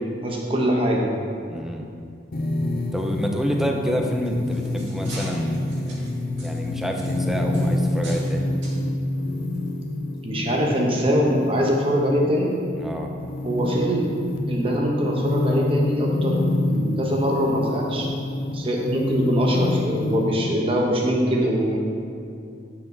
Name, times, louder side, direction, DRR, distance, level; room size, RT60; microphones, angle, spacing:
voice 1, 0.2-1.1 10.2-12.5 13.4-14.1 14.5-18.1 18.5-21.8, equal, 30° right, -1 dB, 1.1 m, -23 dB
voice 2, 1.5-1.9 2.9-6.1 6.4-8.5 12.8-13.1, equal, ahead, 2 dB, 0.6 m, -28 dB
sound 1, 2.3-20.3, left 2 dB, 50° left, 0.6 m, -27 dB
sound 2, 4.2-8.3 8.6-8.8 9.5-9.7 10.2-10.3, right 2 dB, 85° right, 1.9 m, -42 dB
8.7 x 5.9 x 4.0 m, 2.4 s
head